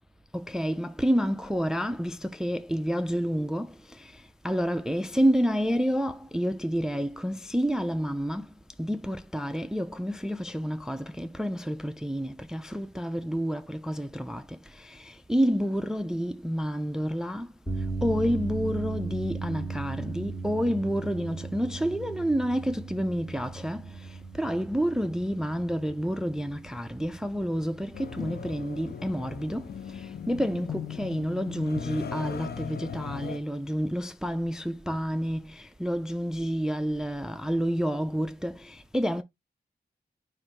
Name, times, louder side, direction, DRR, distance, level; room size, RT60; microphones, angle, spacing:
voice 1, 0.3-3.7 4.4-8.5 8.8-14.4 14.8-17.5 18.0-23.8 24.4-29.6 30.3-39.2, equal, 5° right, 0.3 m, -29 dB
sound 1, 17.7-31.9, right 4 dB, 15° left, 1.0 m, -38 dB
sound 2, 27.9-33.4, left 7 dB, 65° left, 0.4 m, -38 dB
4.4 x 2.5 x 4.4 m
wide cardioid pair, 110°, 17 cm